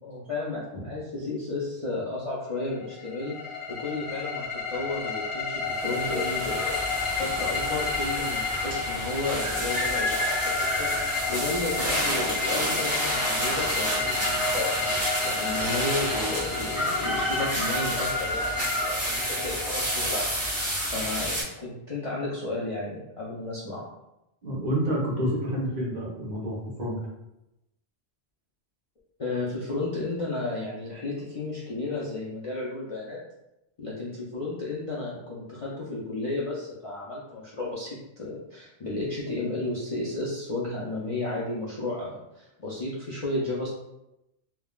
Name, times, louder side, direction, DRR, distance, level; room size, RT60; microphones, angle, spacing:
voice 1, 0.0-6.8 7.2-14.8 15.2-20.4 20.9-23.8 29.2-33.2 33.8-43.7, left 2 dB, 45° left, -7 dB, 0.4 m, -33 dB
sound 1, 2.8-20.6, left 4 dB, 90° left, 1.0 m, -31 dB
sound 2, 5.7-21.4, equal, 15° right, 0.9 m, -30 dB
voice 2, 24.4-27.0, equal, 45° right, -6 dB, 0.9 m, -28 dB
3.4 x 2.2 x 2.3 m, 0.88 s
omnidirectional pair, 1.1 m